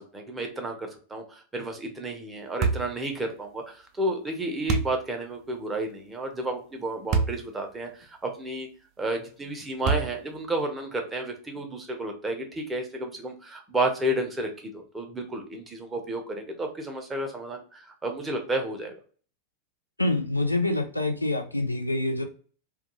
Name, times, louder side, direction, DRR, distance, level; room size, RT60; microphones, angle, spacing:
voice 1, 0.0-8.7 9.0-19.0, right 1 dB, 15° right, 3 dB, 0.7 m, -31 dB
sound 1, 2.6-2.9 4.7-5.0 7.1-7.4 8.0-8.1 9.8-10.3, right 5 dB, 40° right, 0.3 m, -25 dB
voice 2, 20.0-22.2, left 2 dB, 85° left, 6 dB, 0.4 m, -26 dB
2.3 x 2.3 x 2.9 m, 0.41 s
figure-of-eight pair, 90°, 0 cm